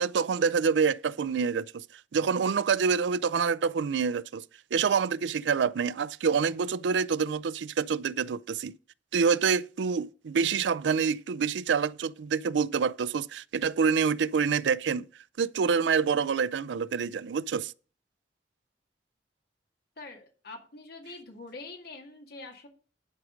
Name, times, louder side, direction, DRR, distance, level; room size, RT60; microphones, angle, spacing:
voice 1, 0.0-4.4 4.7-8.8 9.1-15.1 15.4-17.7, right 6 dB, 80° right, 0.4 m, -27 dB
voice 2, 20.0-22.7, left 3 dB, 60° left, 2.1 m, -44 dB
11.0 x 5.0 x 6.4 m
head